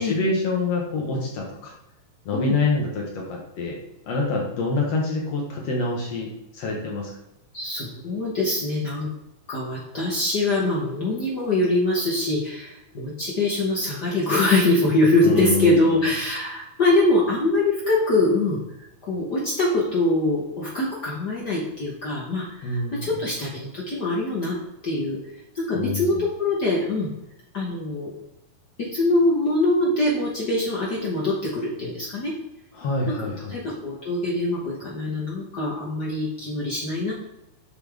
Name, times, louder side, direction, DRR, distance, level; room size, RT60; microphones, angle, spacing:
voice 1, 0.0-1.7 2.3-3.8 4.0-7.1 15.2-16.1 22.6-23.1 25.7-26.3 32.8-33.5, left 3 dB, 60° left, -1 dB, 2.0 m, -26 dB
voice 2, 7.5-9.1 9.5-18.6 19.1-24.6 24.8-25.2 25.5-27.1 27.5-28.1 28.8-32.3 33.1-37.1, left 2 dB, 80° left, -5 dB, 0.9 m, -23 dB
6.9 x 5.6 x 3.5 m, 0.89 s
omnidirectional pair, 3.8 m